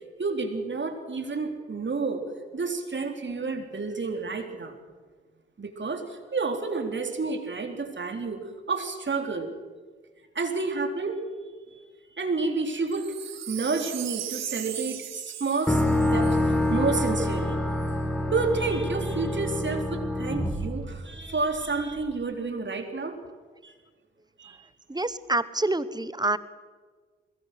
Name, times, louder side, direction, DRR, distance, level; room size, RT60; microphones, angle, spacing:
voice 1, 0.2-2.2 2.5-4.8 5.6-9.5 10.4-11.2 12.1-13.1 13.5-15.8 16.1-17.6 18.3-23.2 23.6-23.7 24.4-24.6, right 4 dB, 40° right, 5 dB, 3.7 m, -30 dB
Wind chime, 12.9-17.3 17.8-17.9, right 11 dB, 65° right, 1.4 m, -38 dB
sound 1, 15.7-21.6, left 1 dB, 5° left, 2.5 m, -26 dB
voice 2, 24.9-26.4, right 2 dB, 15° right, 16 dB, 1.3 m, -27 dB
21.5 x 19.5 x 7.8 m, 1.5 s
hypercardioid pair, 40°, 29 cm